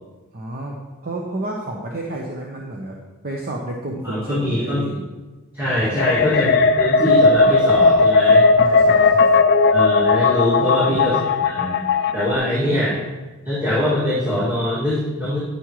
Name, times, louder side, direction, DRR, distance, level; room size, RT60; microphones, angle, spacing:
voice 1, 0.3-0.8 1.0-3.0 3.2-5.0 5.8-6.2 8.6-9.4 10.5-11.3 12.4-13.0, right 1 dB, 45° right, -1 dB, 0.9 m, -31 dB
voice 2, 4.0-5.0 5.5-8.4 9.7-11.8 12.1-12.9 13.4-15.4, left 1 dB, 10° right, -10 dB, 2.3 m, -22 dB
sound 1, 6.0-12.4, left 4 dB, 50° left, 0.4 m, -16 dB
9.9 x 9.7 x 3.2 m, 1.2 s
head